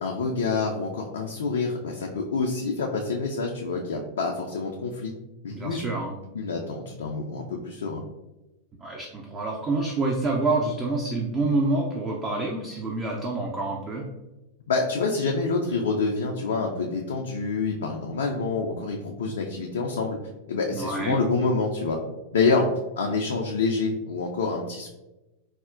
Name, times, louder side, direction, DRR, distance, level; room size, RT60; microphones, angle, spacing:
voice 1, 0.0-5.1 5.4-5.8 6.3-8.0 14.7-20.2 20.5-22.0 22.3-22.7 23.0-24.9, left 4 dB, 65° left, 1 dB, 0.3 m, -27 dB
voice 2, 5.5-6.1 8.8-14.0 20.7-21.2, right 2 dB, 20° right, 0 dB, 0.4 m, -27 dB
4.1 x 2.0 x 2.4 m, 1.0 s
figure-of-eight pair, 90°, 0 cm